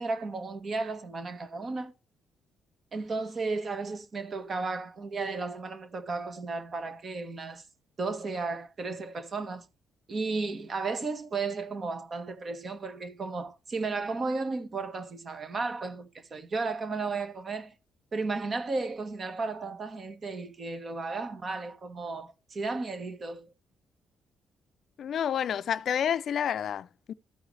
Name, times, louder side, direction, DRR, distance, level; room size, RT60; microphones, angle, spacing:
voice 1, 0.0-1.9 2.9-7.6 8.0-9.6 10.1-17.7 18.1-23.5, right 3 dB, 45° right, 1.5 m, -34 dB
voice 2, 25.0-27.1, left 9 dB, 65° left, 0.4 m, -29 dB
14.0 x 4.8 x 3.2 m
cardioid pair, 90°, 0 cm